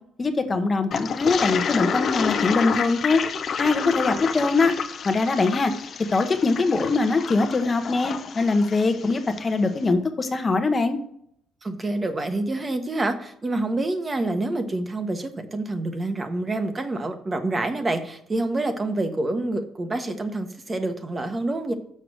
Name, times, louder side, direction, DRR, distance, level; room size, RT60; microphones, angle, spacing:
voice 1, 0.2-3.2 3.6-4.7 5.0-5.7 6.1-11.0, left 3 dB, 30° left, 7 dB, 0.9 m, -22 dB
Toilet flush, 0.9-9.5, left 7 dB, 55° left, 0.6 m, -29 dB
voice 2, 11.6-21.7, right 2 dB, 30° right, 7 dB, 1.1 m, -27 dB
6.6 x 4.9 x 6.3 m, 0.68 s
cardioid pair, 80°, 0 cm